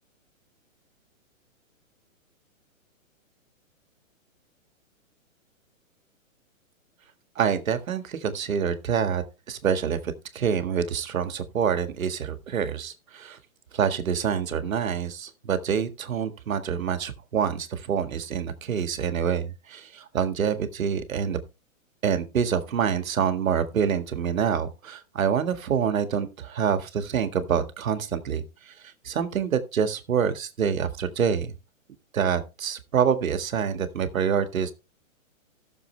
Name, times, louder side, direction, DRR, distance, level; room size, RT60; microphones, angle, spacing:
voice 1, 7.4-13.4 13.7-21.4 22.0-28.7 29.0-31.6 32.1-34.7, right 7 dB, 75° right, 1.8 m, -26 dB
16.0 x 6.8 x 3.3 m
hypercardioid pair, 165°, 41 cm